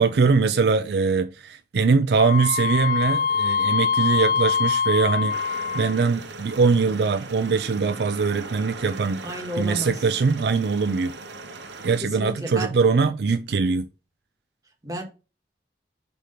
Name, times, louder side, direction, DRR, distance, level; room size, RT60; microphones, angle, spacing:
voice 1, 0.0-9.3 9.6-11.2 11.8-13.9, right 4 dB, 65° right, 0.4 m, -22 dB
Wind instrument woodwind instrument, 2.2-6.1, left 6 dB, 50° left, 0.3 m, -24 dB
sound 1, 5.3-12.0, right 3 dB, 80° right, 1.0 m, -39 dB
voice 2, 9.2-9.9 12.0-12.7 14.8-15.0, equal, 20° right, 1.5 m, -31 dB
5.9 x 3.3 x 5.0 m
head